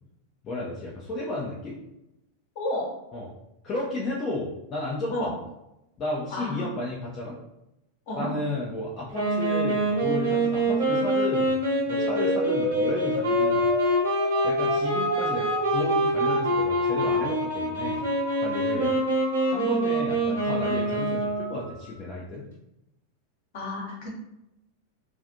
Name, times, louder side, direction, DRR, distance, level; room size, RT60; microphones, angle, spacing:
voice 1, 0.4-1.7 3.1-3.3 3.6-5.3 6.0-7.4 8.2-11.5 11.9-13.7 14.4-18.0 18.4-18.9 19.5-22.5, left 2 dB, 30° left, -5 dB, 0.5 m, -33 dB
voice 2, 2.5-2.9 5.1-5.4 6.3-6.7 8.1-8.3 18.7-19.0 19.7-19.8 23.5-24.1, left 1 dB, 50° left, -2 dB, 1.0 m, -31 dB
Wind instrument woodwind instrument, 9.1-21.6, right 1 dB, 60° right, 1.0 m, -25 dB
sound 1, 11.9-21.9, right 1 dB, 90° left, 0.9 m, -32 dB
2.4 x 2.4 x 2.6 m, 0.88 s
figure-of-eight pair, 90°, 0 cm